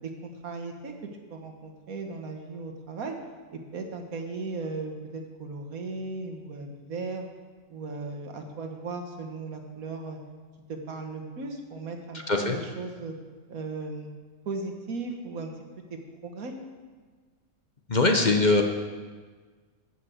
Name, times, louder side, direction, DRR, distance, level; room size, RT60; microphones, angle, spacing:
voice 1, 0.0-3.2 3.5-7.3 7.7-10.2 10.7-13.1 13.5-14.1 14.4-15.5 15.9-16.5, right 3 dB, 85° right, 4 dB, 1.7 m, -37 dB
voice 2, 17.9-18.6, left 3 dB, 40° left, 3 dB, 0.9 m, -21 dB
12.5 x 5.8 x 7.9 m, 1.5 s
omnidirectional pair, 1.4 m